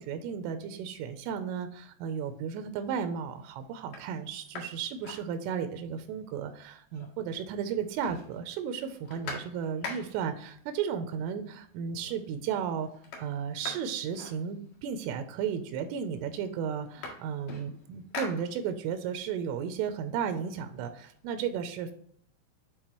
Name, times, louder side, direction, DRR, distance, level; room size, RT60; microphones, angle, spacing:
voice 1, 0.0-12.9 13.2-21.9, right 7 dB, 85° right, 8 dB, 3.1 m, -34 dB
sound 1, 2.4-2.9 3.4-3.5 3.8-5.9 6.2-6.3 6.5-7.4 7.7-10.4 11.3-11.4 11.8-12.3 12.6-15.0 15.8-15.9 16.2-19.0 19.4-21.1, left 3 dB, 55° left, 2.5 m, -44 dB
9.5 x 4.1 x 3.0 m, 0.63 s
omnidirectional pair, 5.6 m